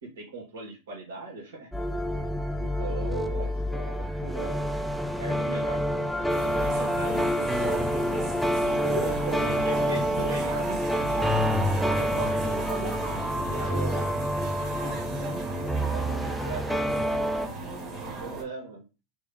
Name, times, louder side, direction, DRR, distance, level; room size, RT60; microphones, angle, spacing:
voice 1, 0.0-1.7 2.6-4.8 5.2-8.3 9.0-11.3 13.4-14.1 15.4-15.8 17.8-17.9 18.2-18.8, right 3 dB, 85° right, 1.5 m, -39 dB
sound 1, 1.7-17.5, equal, ahead, 0.3 m, -28 dB
sound 2, 6.3-18.4, right 3 dB, 25° right, 1.4 m, -36 dB
voice 2, 8.8-10.4 11.8-13.9 14.8-16.8 18.0-18.5, right 2 dB, 55° right, 1.5 m, -39 dB
3.6 x 2.5 x 3.4 m
supercardioid pair, 135°, 0 cm